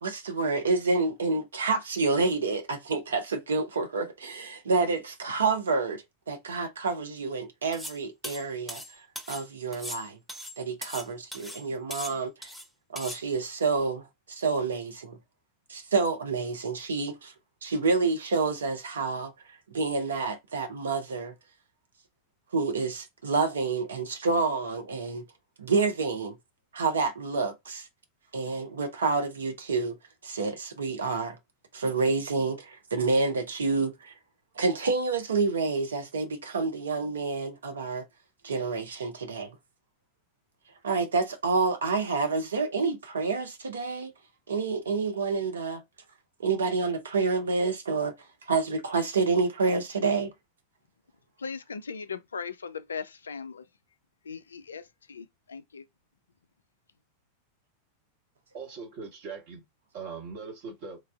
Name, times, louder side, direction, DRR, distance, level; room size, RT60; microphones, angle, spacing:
voice 1, 0.0-8.8 9.3-10.2 10.6-12.3 12.9-15.2 15.7-17.3 17.6-19.3 19.7-21.3 22.5-25.2 25.6-26.4 26.7-27.9 28.3-30.0 30.2-31.4 31.7-34.1 34.6-38.0 38.4-39.5 40.8-44.1 44.5-45.8 46.4-48.1 48.5-50.3, right 4 dB, 70° right, 0.5 m, -28 dB
sound 1, 7.7-9.4 9.7-11.1 11.3-11.6 11.9-12.7 13.0-13.2, equal, ahead, 0.5 m, -39 dB
voice 2, 51.4-53.6 54.3-54.8 55.1-55.8, left 5 dB, 70° left, 0.3 m, -38 dB
voice 3, 58.5-59.6 59.9-61.0, right 5 dB, 50° right, 1.1 m, -40 dB
3.1 x 2.3 x 2.3 m
figure-of-eight pair, 90°, 0 cm